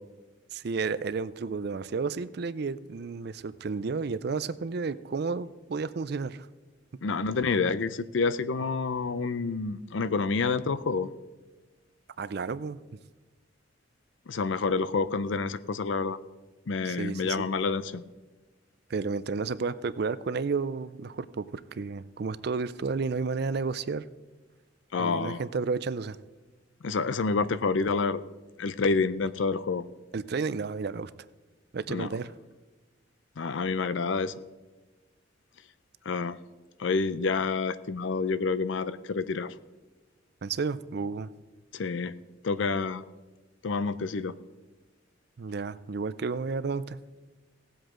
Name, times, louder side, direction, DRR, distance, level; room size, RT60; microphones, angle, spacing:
voice 1, 0.5-6.5 12.2-12.8 16.8-17.5 18.9-24.1 25.0-26.2 30.1-31.1 31.7-32.3 40.4-41.3 45.4-47.0, right 4 dB, 55° right, 16 dB, 0.4 m, -32 dB
voice 2, 7.0-11.1 14.3-16.2 16.7-18.0 24.9-25.4 26.8-28.2 28.6-29.8 31.9-32.1 33.4-34.3 36.1-36.4 36.8-39.5 41.7-42.1 42.4-43.0 43.6-44.3, left 4 dB, 70° left, 16 dB, 0.5 m, -28 dB
17.5 x 7.9 x 3.8 m, 1.2 s
head